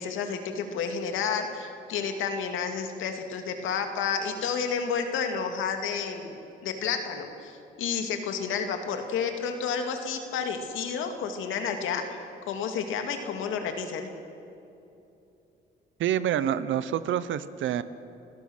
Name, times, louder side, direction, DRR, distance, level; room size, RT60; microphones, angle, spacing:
voice 1, 0.0-6.4 6.6-12.2 12.5-14.1, left 6 dB, 85° left, 5 dB, 2.3 m, -30 dB
voice 2, 16.0-17.8, right 10 dB, 75° right, 15 dB, 1.0 m, -27 dB
30.0 x 17.5 x 6.3 m, 2.8 s
cardioid pair, 90°, 20 cm